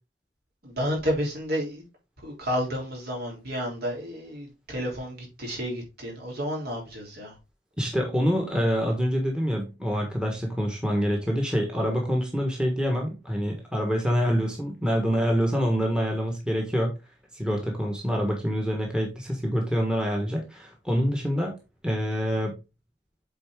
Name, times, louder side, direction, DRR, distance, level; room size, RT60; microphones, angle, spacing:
voice 1, 0.6-1.9 2.2-7.3, equal, 55° right, 3.4 m, -31 dB
voice 2, 7.8-16.9 17.3-21.5 21.8-22.5, equal, 5° right, 1.4 m, -26 dB
8.0 x 4.3 x 3.6 m
head